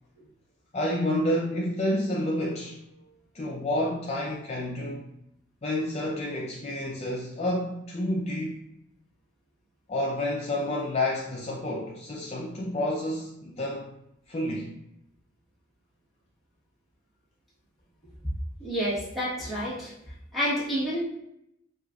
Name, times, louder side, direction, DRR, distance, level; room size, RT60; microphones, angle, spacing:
voice 1, 0.7-2.8 3.3-5.1 5.6-8.6 9.9-13.9 14.3-14.7, left 1 dB, 30° left, -3 dB, 0.4 m, -29 dB
voice 2, 18.6-19.9 20.3-21.0, equal, ahead, -8 dB, 1.1 m, -29 dB
4.7 x 2.4 x 2.3 m, 0.80 s
head